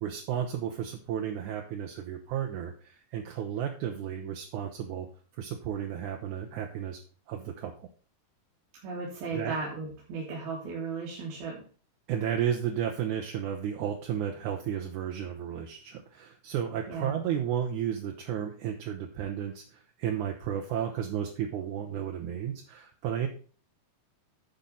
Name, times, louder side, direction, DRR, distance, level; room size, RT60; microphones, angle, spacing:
voice 1, 0.0-5.1 5.4-7.0 7.3-7.9 9.3-9.5 12.1-23.3, right 9 dB, 70° right, 3 dB, 2.1 m, -33 dB
voice 2, 8.8-11.6 16.9-17.2, right 4 dB, 90° right, -4 dB, 4.1 m, -35 dB
10.5 x 5.3 x 5.4 m, 0.41 s
omnidirectional pair, 4.2 m